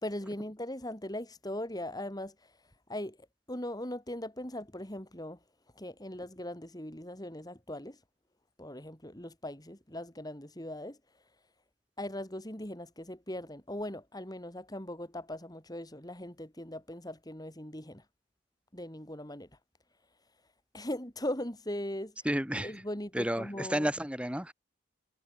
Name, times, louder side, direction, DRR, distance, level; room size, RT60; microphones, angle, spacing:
voice 1, 0.0-2.5 2.9-3.2 3.5-5.4 5.8-8.0 8.6-11.0 12.0-18.0 18.7-19.5 20.7-22.1 22.6-23.9, left 1 dB, 20° left, 3.5 m, -39 dB
voice 2, 22.2-22.7 23.1-24.5, equal, 5° right, 4.6 m, -31 dB
head